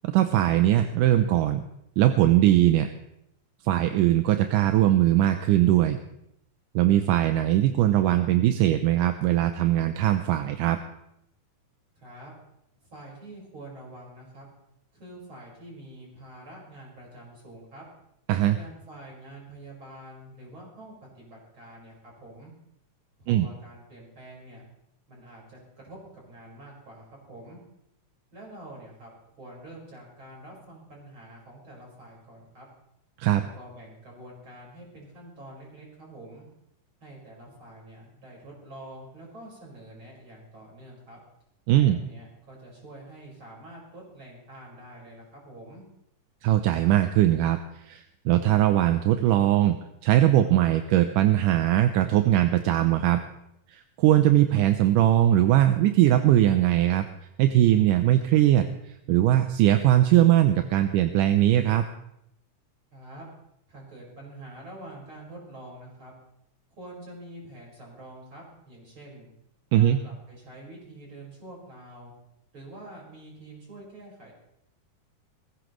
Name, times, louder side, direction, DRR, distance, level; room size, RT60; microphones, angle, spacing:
voice 1, 0.0-1.6 2.0-2.9 3.6-6.0 6.8-10.8 18.3-18.6 23.3-23.5 33.2-33.4 41.7-42.0 46.4-49.8 50.0-53.2 53.7-57.1 57.4-58.7 59.1-61.8 69.7-70.0, right 13 dB, 80° right, 8 dB, 2.2 m, -20 dB
voice 2, 12.0-12.3 12.8-14.5 14.9-17.8 18.5-22.5 23.2-24.6 25.1-27.6 28.3-29.1 29.4-32.7 33.3-36.5 37.0-41.2 41.7-45.8 62.9-63.3 63.7-66.1 66.8-69.3 69.7-72.1 72.5-74.3, right 1 dB, 40° right, -4 dB, 5.8 m, -46 dB
19.5 x 15.5 x 3.1 m, 0.80 s
omnidirectional pair, 3.7 m